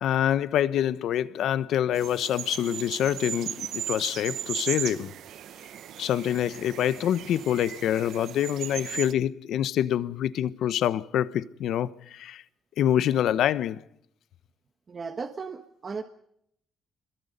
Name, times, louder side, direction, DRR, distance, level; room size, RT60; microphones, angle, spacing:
voice 1, 0.0-5.1 6.0-12.4 12.8-13.8, left 10 dB, 80° left, 1.0 m, -26 dB
sound 1, 1.9-9.1, right 10 dB, 75° right, 0.8 m, -37 dB
voice 2, 14.9-16.0, right 5 dB, 40° right, 1.5 m, -36 dB
26.5 x 22.5 x 5.3 m
cardioid pair, 90°, 0 cm